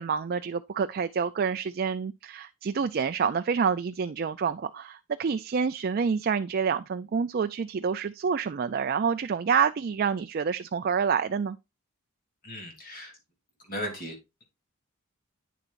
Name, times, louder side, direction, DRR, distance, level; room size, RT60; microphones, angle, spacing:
voice 1, 0.0-11.6, right 6 dB, 45° right, 0.4 m, -28 dB
voice 2, 12.4-13.1 13.7-14.4, equal, 45° left, 3.0 m, -37 dB
9.3 x 6.9 x 2.5 m
head